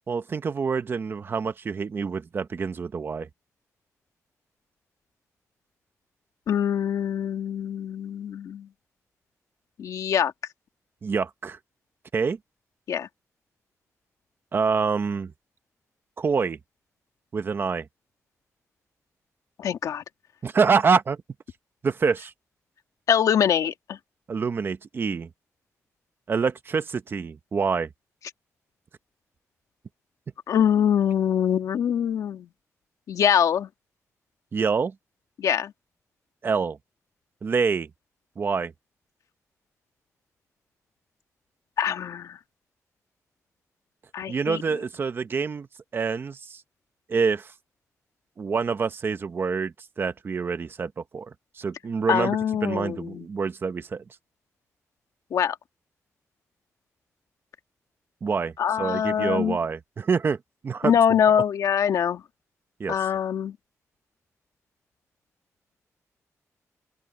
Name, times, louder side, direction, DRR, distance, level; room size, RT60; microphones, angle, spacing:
voice 1, 0.1-3.3 11.0-11.6 12.1-12.4 14.5-15.3 16.2-16.6 17.3-17.9 20.4-21.2 21.8-22.3 24.3-25.3 26.3-27.9 34.5-34.9 36.4-36.8 37.4-37.9 38.4-38.7 44.3-45.7 45.9-46.6 47.1-47.5 48.4-51.3 51.6-54.0 58.2-60.4 60.6-61.2 62.8-63.0, right 5 dB, 40° right, 1.1 m, -26 dB
voice 2, 6.5-8.7 9.8-10.3 12.9-13.1 19.6-20.0 23.1-24.0 30.5-32.5 33.1-33.7 35.4-35.7 41.8-42.4 44.1-44.6 52.1-53.2 55.3-55.6 58.6-59.6 60.8-62.2 62.9-63.6, left 8 dB, 80° left, 1.8 m, -23 dB
open air
wide cardioid pair, 140°, 6 cm